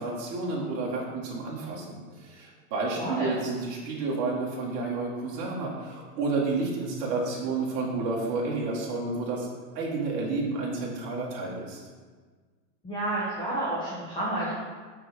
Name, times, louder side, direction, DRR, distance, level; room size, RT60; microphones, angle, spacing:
voice 1, 0.0-9.5 9.7-11.8, right 3 dB, 30° right, -4 dB, 2.1 m, -30 dB
voice 2, 3.0-3.3 12.8-14.6, right 1 dB, 10° left, -8 dB, 1.3 m, -30 dB
6.3 x 6.0 x 6.6 m, 1.5 s
supercardioid pair, 170°, 48 cm